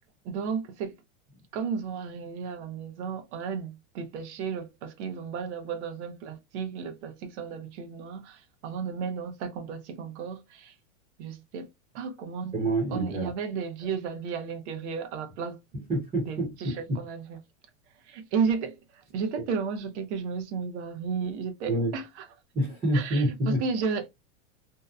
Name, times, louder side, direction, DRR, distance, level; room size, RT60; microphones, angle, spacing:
voice 1, 0.2-1.0 1.5-10.7 11.2-11.7 11.9-12.5 12.9-15.8 16.3-17.4 18.0-22.1 22.9-24.1, right 6 dB, 60° right, 0.8 m, -33 dB
voice 2, 12.5-13.3 15.9-17.0 21.6-21.9 22.5-23.6, right 1 dB, 15° right, 0.8 m, -27 dB
2.7 x 2.1 x 2.3 m
supercardioid pair, 160°, 38 cm